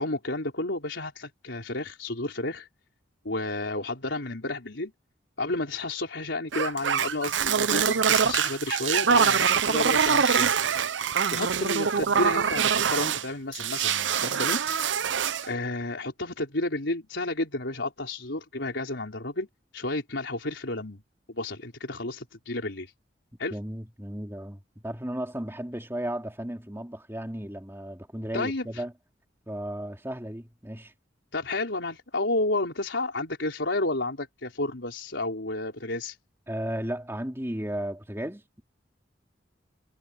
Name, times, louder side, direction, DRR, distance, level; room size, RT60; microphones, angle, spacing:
voice 1, 0.0-2.7 3.2-4.9 5.4-10.5 11.3-14.6 15.4-19.5 19.7-21.0 21.3-22.9 23.4-23.6 28.3-28.8 31.3-36.2, left 2 dB, 85° left, 4.1 m, -31 dB
sound 1, 6.5-13.2 13.5-15.5, right 7 dB, 85° right, 0.7 m, -24 dB
voice 2, 23.5-28.9 29.5-30.9 36.5-38.6, right 1 dB, 15° right, 2.8 m, -34 dB
head